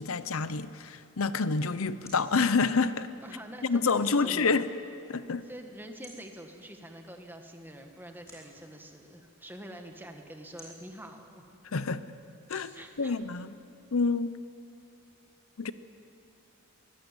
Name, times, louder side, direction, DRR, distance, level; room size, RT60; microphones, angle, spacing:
voice 1, 0.0-3.1 3.6-4.7 5.1-5.5 11.7-12.0 12.5-12.7 13.0-13.5 13.9-14.4 15.6-15.7, left 4 dB, 75° left, 14 dB, 0.8 m, -28 dB
sound 1, 1.4-14.1, left 1 dB, 15° left, 4.7 m, -59 dB
voice 2, 3.2-4.6 5.4-11.4 12.7-13.2, right 1 dB, 10° right, 4 dB, 1.5 m, -45 dB
22.0 x 15.5 x 9.2 m, 2.7 s
head